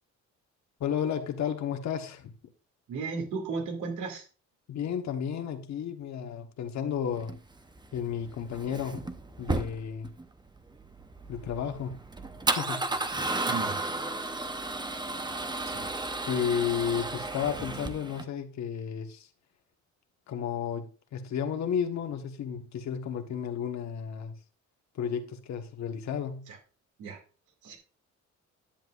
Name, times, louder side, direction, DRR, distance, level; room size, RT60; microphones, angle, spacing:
voice 1, 0.8-2.3 4.7-7.3 7.9-9.0 9.4-10.1 11.3-12.0 12.6-12.9 16.3-19.3 20.3-24.3 24.9-26.5, left 8 dB, 65° left, 1.3 m, -32 dB
voice 2, 2.9-4.3 13.5-13.8 15.6-15.9 26.5-26.6 27.0-27.2 27.6-27.8, right 4 dB, 80° right, 2.5 m, -35 dB
Male speech man speaking / Car / Engine starting, 7.2-18.2, right 2 dB, 15° right, 0.8 m, -34 dB
10.5 x 7.5 x 2.5 m
cardioid pair, 90°, 30 cm